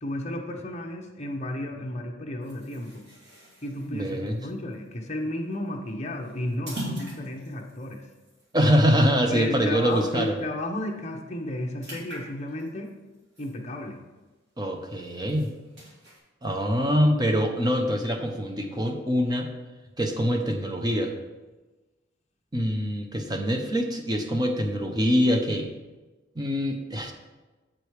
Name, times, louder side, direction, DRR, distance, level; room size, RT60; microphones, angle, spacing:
voice 1, 0.0-3.0 3.6-8.1 9.3-12.9 13.4-14.0, left 1 dB, 35° left, 2 dB, 0.9 m, -33 dB
sound 1, 2.4-10.4 10.8-11.0 11.3-14.2 14.6-16.2, right 1 dB, 55° right, 2.6 m, -43 dB
voice 2, 3.9-4.4 8.5-10.3 14.6-15.5 16.4-19.5 20.0-21.1 22.5-25.7 26.4-27.1, equal, 20° right, 4 dB, 0.7 m, -24 dB
7.5 x 5.0 x 4.7 m, 1.2 s
head